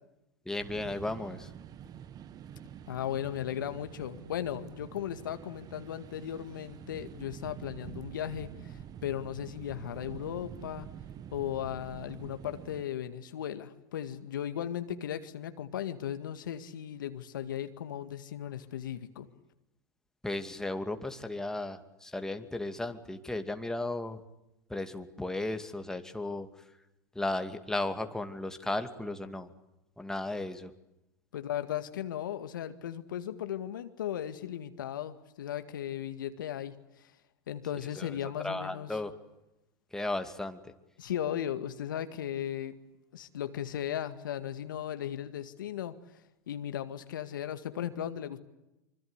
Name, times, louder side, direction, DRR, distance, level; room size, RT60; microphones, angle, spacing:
voice 1, 0.5-1.5 20.2-24.2 24.7-26.7 27.1-29.5 30.0-30.7 37.9-38.2 38.4-39.1 39.9-40.7, left 2 dB, 5° left, 7 dB, 2.5 m, -35 dB
sound 1, 0.6-12.8, right 9 dB, 35° right, 1.6 m, -47 dB
voice 2, 2.9-10.9 11.3-19.3 31.3-37.1 37.5-38.9 41.0-42.8 43.1-45.9 46.5-48.4, left 10 dB, 80° left, 10 dB, 2.0 m, -36 dB
25.5 x 25.0 x 8.2 m, 0.92 s
hypercardioid pair, 95°, 11 cm